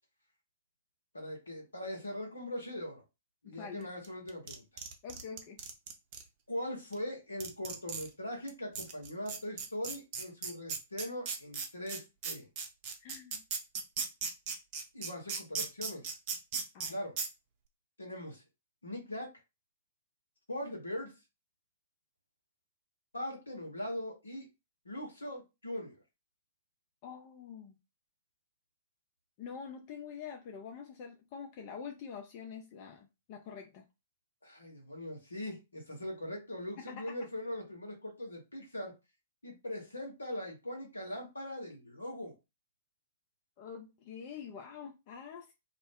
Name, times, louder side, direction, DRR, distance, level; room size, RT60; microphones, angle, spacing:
voice 1, 1.1-3.0 3.4-4.7 6.5-12.5 14.9-16.0 16.9-17.2 18.0-18.4 18.8-19.3 20.5-21.2 23.1-24.5 24.8-26.0 34.4-38.9 39.4-42.3, left 1 dB, 75° left, 1.1 m, -41 dB
voice 2, 3.4-3.9 5.0-5.6 13.0-13.4 16.7-17.0 27.0-27.7 29.4-33.9 36.8-37.2 43.6-45.5, left 6 dB, 40° left, 0.4 m, -46 dB
sound 1, 4.0-6.2 6.9-7.0 7.4-8.1 8.5-8.6 8.7-16.9 17.2-17.3, right 5 dB, 40° right, 0.6 m, -37 dB
2.4 x 2.0 x 3.5 m
figure-of-eight pair, 110°, 0 cm